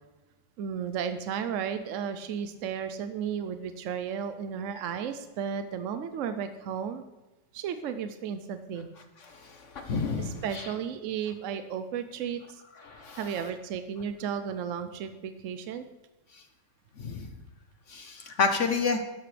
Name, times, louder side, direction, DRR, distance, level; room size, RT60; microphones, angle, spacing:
voice 1, 0.6-7.0 7.5-8.9 10.2-12.6 13.1-15.9, right 7 dB, 70° right, 9 dB, 0.7 m, -34 dB
voice 2, 9.3-10.4 12.9-13.2 17.0-17.3 17.9-19.0, left 4 dB, 50° left, 6 dB, 1.0 m, -29 dB
13.5 x 11.0 x 3.3 m, 1.1 s
omnidirectional pair, 1.9 m